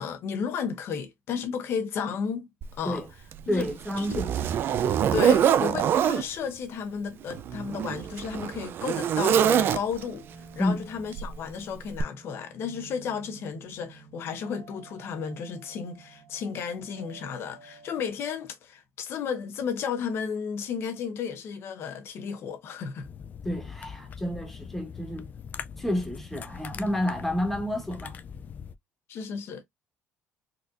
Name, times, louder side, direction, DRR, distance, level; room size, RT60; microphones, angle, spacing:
voice 1, 0.0-3.0 3.5-3.6 4.0-4.2 5.1-10.2 10.5-23.1 29.1-29.7, left 6 dB, 60° left, 1.0 m, -33 dB
Zipper (clothing), 2.6-2.7 3.3-6.2 7.2-10.2 11.1-11.4 12.0-12.1, right 9 dB, 50° right, 0.4 m, -24 dB
sound 1, 3.4-18.1, right 5 dB, 80° right, 1.0 m, -52 dB
voice 2, 3.5-4.4 5.8-5.9 10.6-10.9 23.4-25.3 25.8-28.2, left 1 dB, 5° left, 1.3 m, -30 dB
sound 2, 23.0-28.7, left 7 dB, 40° left, 0.3 m, -42 dB
4.0 x 2.6 x 2.5 m
cardioid pair, 115°, 5 cm